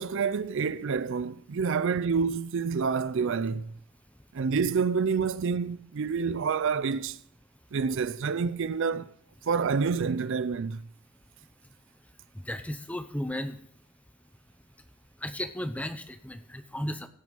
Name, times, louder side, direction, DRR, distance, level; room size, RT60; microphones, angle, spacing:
voice 1, 0.0-3.7 4.3-7.2 7.7-9.1 9.5-10.8, right 5 dB, 60° right, 0.5 m, -28 dB
voice 2, 12.5-13.6 15.2-17.1, left 1 dB, 5° left, 0.7 m, -34 dB
17.0 x 6.5 x 5.2 m
head